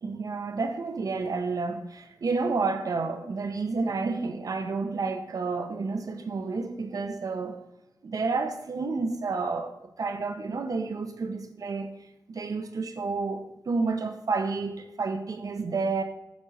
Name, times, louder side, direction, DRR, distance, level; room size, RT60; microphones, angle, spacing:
voice 1, 0.0-7.6 8.0-11.9 12.3-16.0, right 4 dB, 55° right, 1.1 m, -30 dB
10.5 x 8.5 x 6.6 m
wide cardioid pair, 95°, 7 cm